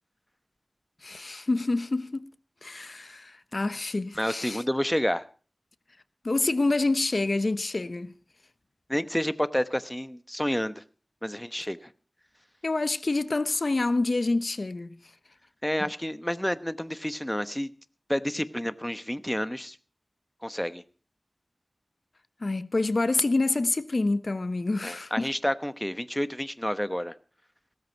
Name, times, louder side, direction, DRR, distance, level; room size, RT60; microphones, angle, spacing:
voice 1, 1.0-2.3 2.6-4.6 6.2-8.1 12.6-15.0 22.4-25.3, left 2 dB, 60° left, 0.8 m, -27 dB
voice 2, 4.2-5.3 8.9-10.8 11.2-11.9 15.6-17.7 18.1-19.8 20.4-20.8 24.8-27.1, equal, 10° left, 1.0 m, -29 dB
17.0 x 13.5 x 4.5 m
wide cardioid pair, 60°, 0 cm